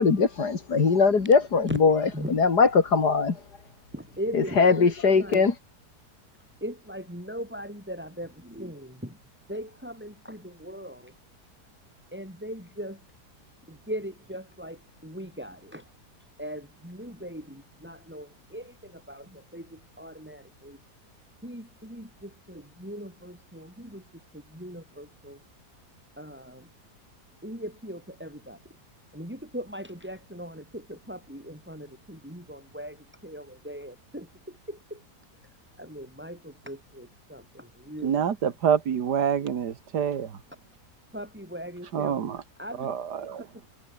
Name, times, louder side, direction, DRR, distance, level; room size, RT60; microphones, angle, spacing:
voice 1, 0.0-3.4 4.3-5.5, left 5 dB, 80° left, 3.3 m, -21 dB
voice 2, 3.9-4.9 5.2-5.4 6.6-9.2 9.5-11.1 12.1-13.0 13.7-15.9 16.4-20.8 21.4-24.0 24.3-25.4 26.2-26.7 27.4-28.6 29.1-35.0 35.8-38.5 41.1-42.2 42.6-42.9, equal, 5° right, 7.2 m, -39 dB
voice 3, 38.0-40.4 41.9-42.4 42.8-43.5, right 8 dB, 90° right, 2.1 m, -27 dB
omnidirectional pair, 1.7 m